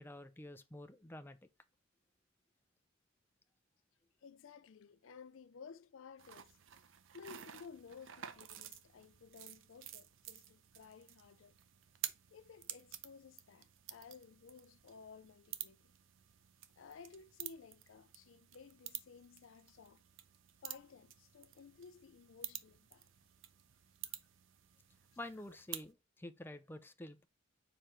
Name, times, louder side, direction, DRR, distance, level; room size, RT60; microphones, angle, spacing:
voice 1, 0.0-1.4 25.2-27.3, left 1 dB, 10° left, 0.5 m, -49 dB
voice 2, 4.2-6.6 7.1-11.6 12.3-15.9 16.8-20.0 20.6-23.1, left 5 dB, 75° left, 0.4 m, -56 dB
sound 1, 6.2-25.9, right 12 dB, 70° right, 0.6 m, -51 dB
5.0 x 4.8 x 4.4 m
head